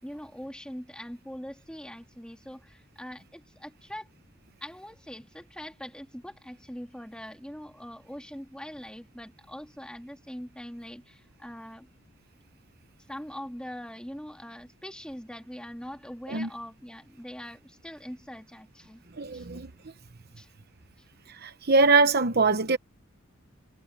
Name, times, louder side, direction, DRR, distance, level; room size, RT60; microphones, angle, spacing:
voice 1, 0.0-4.1 4.6-11.9 13.1-19.0 19.3-19.5 20.4-20.5, equal, 5° left, 3.2 m, -42 dB
voice 2, 19.2-19.7 21.4-22.8, right 3 dB, 50° right, 1.0 m, -22 dB
head